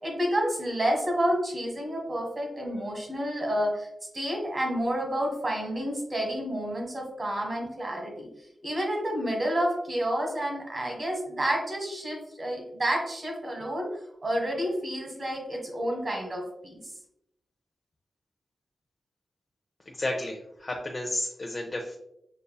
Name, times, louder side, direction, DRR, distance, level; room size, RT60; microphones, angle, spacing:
voice 1, 0.0-3.9 4.1-8.3 8.6-13.9 14.2-16.9, equal, 35° right, 1 dB, 1.3 m, -29 dB
voice 2, 19.9-22.0, left 1 dB, 35° left, 0 dB, 0.6 m, -32 dB
6.7 x 2.6 x 2.3 m, 0.79 s
wide cardioid pair, 95°, 0 cm